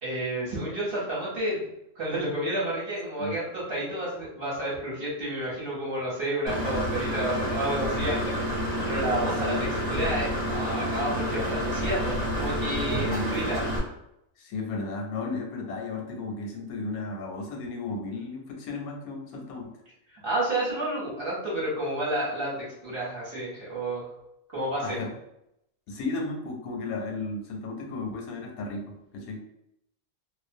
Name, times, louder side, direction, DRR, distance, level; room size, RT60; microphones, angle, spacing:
voice 1, 0.0-1.7 1.9-8.4 8.9-13.6 20.1-24.1 24.5-25.0, right 1 dB, 45° right, -7 dB, 1.0 m, -30 dB
Engine / Mechanisms, 6.5-13.8, equal, 15° right, 0.7 m, -29 dB
voice 2, 14.4-19.7 24.8-25.1 25.9-29.4, left 3 dB, 85° left, 2 dB, 1.0 m, -34 dB
2.5 x 2.0 x 2.5 m, 0.81 s
omnidirectional pair, 1.5 m